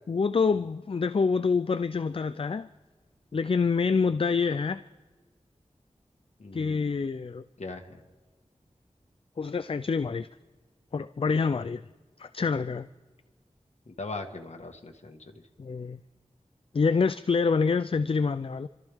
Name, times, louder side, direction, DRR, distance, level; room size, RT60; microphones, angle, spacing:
voice 1, 0.1-2.7 3.3-4.8 6.5-7.4 9.4-10.3 10.9-11.8 12.2-12.9 15.6-16.0 16.7-18.7, left 5 dB, 50° left, 0.4 m, -26 dB
voice 2, 6.4-7.0 7.6-8.0 13.9-15.3, left 3 dB, 65° left, 1.6 m, -40 dB
29.0 x 13.0 x 3.6 m
wide cardioid pair, 55°, 12 cm